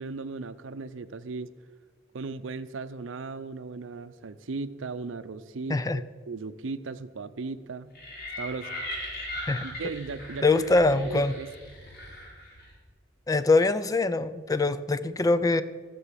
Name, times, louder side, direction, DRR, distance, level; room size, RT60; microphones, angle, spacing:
voice 1, 0.0-1.5 2.1-8.0 8.4-8.7 9.6-10.6 10.9-11.5, right 4 dB, 75° right, 13 dB, 0.6 m, -37 dB
voice 2, 5.7-6.0 9.5-9.6 10.4-11.3 13.3-15.6, left 3 dB, 20° left, 13 dB, 0.4 m, -23 dB
sound 1, 7.9-12.8, left 1 dB, 55° left, 3.6 m, -39 dB
15.0 x 6.9 x 7.5 m, 1.5 s
head